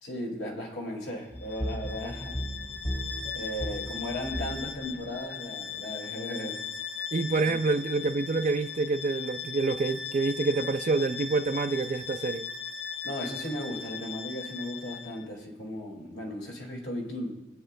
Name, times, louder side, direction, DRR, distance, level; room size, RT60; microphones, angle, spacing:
voice 1, 0.0-2.4 3.3-6.6 7.4-7.6 13.0-17.3, left 1 dB, 80° left, 2.1 m, -36 dB
sound 1, 1.3-5.4, equal, 60° left, 2.4 m, -36 dB
Bowed string instrument, 1.4-15.2, left 6 dB, 10° left, 0.6 m, -39 dB
voice 2, 7.1-12.5, right 3 dB, 45° right, 0.4 m, -27 dB
24.5 x 8.3 x 2.2 m
head